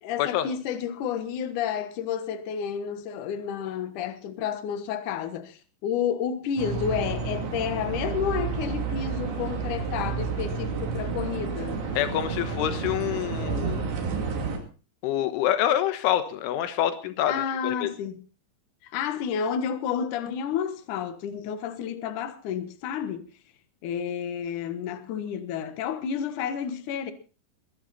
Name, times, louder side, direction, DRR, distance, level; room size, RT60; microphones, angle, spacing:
voice 1, 0.0-11.8 17.3-18.2 18.8-23.3 23.8-27.1, left 8 dB, 65° left, 2.0 m, -30 dB
sound 1, 6.6-14.6, right 5 dB, 70° right, 4.9 m, -30 dB
voice 2, 12.0-13.9 15.0-17.3 17.6-17.9, left 11 dB, 90° left, 3.8 m, -26 dB
22.0 x 12.0 x 4.2 m
omnidirectional pair, 5.4 m